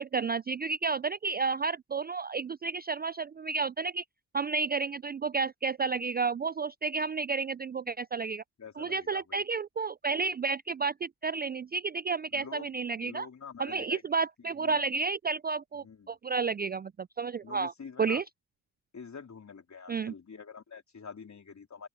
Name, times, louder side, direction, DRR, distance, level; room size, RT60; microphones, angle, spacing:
voice 1, 0.0-4.0 4.3-8.4 8.8-13.3 13.6-17.7 18.0-18.2 19.9-20.1, right 4 dB, 25° right, 0.4 m, -31 dB
voice 2, 8.6-9.4 12.3-12.7 13.0-14.0 14.6-14.9 15.8-16.2 17.4-18.2 18.9-21.9, left 5 dB, 40° left, 3.9 m, -46 dB
supercardioid pair, 55°, 42 cm